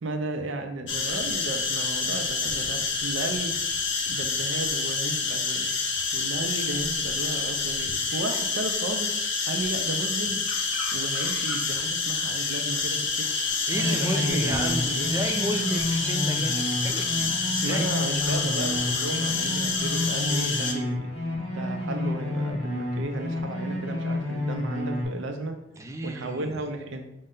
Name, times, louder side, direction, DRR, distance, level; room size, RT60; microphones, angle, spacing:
voice 1, 0.0-3.5 4.1-5.7 6.1-10.4 10.9-13.4 13.7-15.2 17.6-21.1 21.5-25.6 26.0-27.0, right 2 dB, 90° right, 5 dB, 0.6 m, -34 dB
sound 1, 0.9-20.7, left 4 dB, 75° left, 0.6 m, -28 dB
sound 2, 13.7-25.0, left 1 dB, 35° left, 1.2 m, -30 dB
voice 2, 13.7-17.9 25.7-26.6, right 1 dB, 15° right, 4 dB, 0.4 m, -32 dB
5.3 x 2.1 x 3.7 m, 0.86 s
head